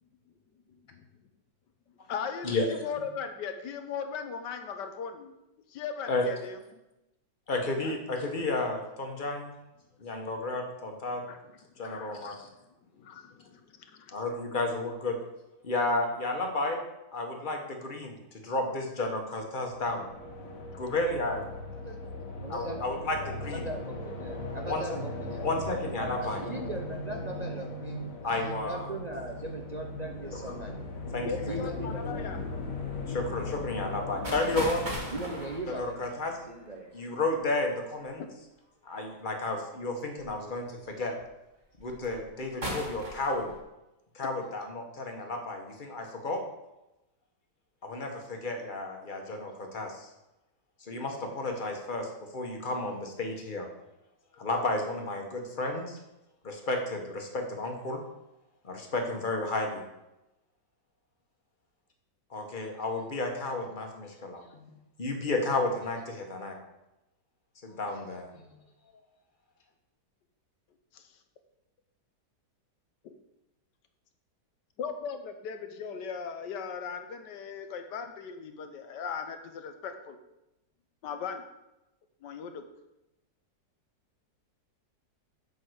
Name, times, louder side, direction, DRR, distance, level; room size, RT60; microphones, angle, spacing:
voice 1, 2.1-5.3 5.7-6.8 7.8-8.0 11.3-11.4 11.8-12.3 12.9-13.6 13.9-14.1 31.2-32.4 70.9-71.1 73.0-73.1 74.8-80.2 81.0-81.4 82.2-82.6, left 6 dB, 85° left, 7 dB, 1.5 m, -38 dB
voice 2, 7.5-9.5 10.0-11.2 11.8-12.5 14.1-15.2 15.6-16.8 17.1-20.1 20.5-21.4 22.5-23.7 24.6-25.0 25.4-26.4 28.2-28.9 31.1-31.6 33.1-34.9 35.7-36.4 36.9-38.2 38.8-41.1 41.8-43.5 44.1-46.4 47.8-50.1 50.8-53.7 54.4-56.0 56.4-58.0 58.6-59.8 62.3-64.7 65.0-66.6 67.6-68.5, left 2 dB, 30° left, 3 dB, 1.4 m, -32 dB
sound 1, 19.5-36.5, left 2 dB, 55° left, 1.5 m, -38 dB
voice 3, 22.4-25.5 26.0-30.7 31.5-32.3 32.8-32.9 35.1-36.1 36.5-36.9, right 2 dB, 45° right, 1 dB, 0.5 m, -39 dB
sound 2, 34.2-37.7 38.9-39.4 40.2-40.3 40.8-41.2 41.8-42.3 42.6-43.6, equal, 25° right, 1.9 m, -38 dB
7.4 x 5.7 x 6.4 m, 0.94 s
omnidirectional pair, 1.8 m